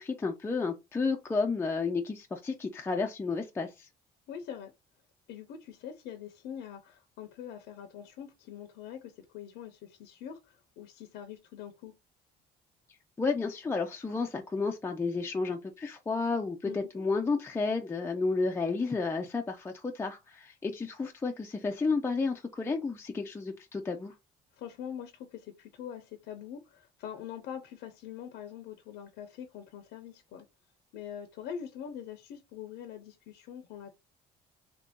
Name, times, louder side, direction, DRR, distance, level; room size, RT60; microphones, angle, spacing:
voice 1, 0.0-3.9 13.2-24.1, left 4 dB, 15° left, 0.4 m, -31 dB
voice 2, 4.3-4.7 5.3-11.9 16.6-16.8 24.5-30.5 30.9-33.9, left 9 dB, 85° left, 0.6 m, -44 dB
2.9 x 2.6 x 3.5 m
cardioid pair, 110°, 17 cm